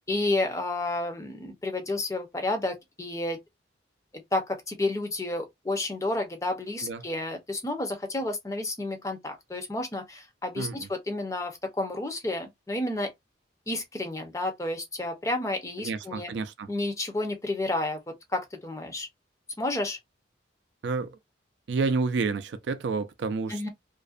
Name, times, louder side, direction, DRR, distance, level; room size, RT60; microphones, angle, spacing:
voice 1, 0.1-3.4 4.1-13.1 13.7-16.3 16.7-18.0 18.3-19.1 19.6-20.0 23.5-23.7, left 2 dB, 15° left, 0.5 m, -31 dB
voice 2, 10.6-10.9 15.8-16.7 20.8-21.2 21.7-23.7, right 4 dB, 70° right, 0.4 m, -29 dB
2.5 x 2.1 x 2.4 m
head